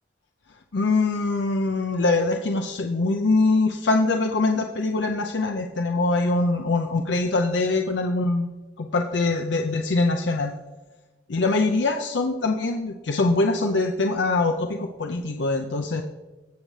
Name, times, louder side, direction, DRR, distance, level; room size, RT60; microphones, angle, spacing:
voice 1, 0.7-8.5 8.8-10.5 11.3-16.0, left 3 dB, 70° left, 3 dB, 0.6 m, -23 dB
17.5 x 6.5 x 3.2 m, 1.2 s
head